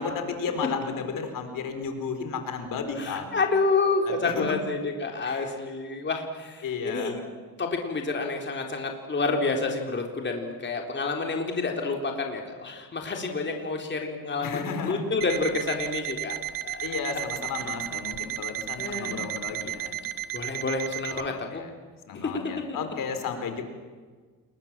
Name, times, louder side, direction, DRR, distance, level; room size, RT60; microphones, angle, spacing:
voice 1, 0.0-3.4 4.0-4.6 5.2-5.5 6.6-7.2 14.4-15.0 16.8-20.0 21.1-21.7 22.1-23.6, left 5 dB, 70° left, 7 dB, 4.4 m, -33 dB
voice 2, 3.0-7.2 7.6-17.2 17.6-17.8 18.8-19.2 20.3-21.6 22.1-22.4 22.7-22.8, left 3 dB, 35° left, 2 dB, 4.0 m, -29 dB
Alarm, 15.2-21.3, right 12 dB, 75° right, 1.3 m, -34 dB
28.5 x 22.5 x 7.6 m, 1.5 s
cardioid pair, 110°, 34 cm